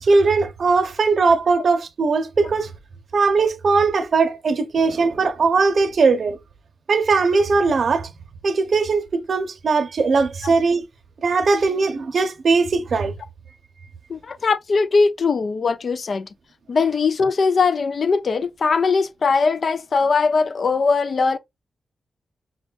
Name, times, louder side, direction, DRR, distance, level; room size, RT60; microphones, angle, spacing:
voice 1, 0.0-2.7 3.1-6.4 6.9-8.1 8.4-10.8 11.2-13.1, right 4 dB, 55° right, 0.7 m, -19 dB
voice 2, 14.1-16.3 16.7-21.4, left 4 dB, 50° left, 0.4 m, -20 dB
6.1 x 2.3 x 2.4 m
wide cardioid pair, 120°, 0 cm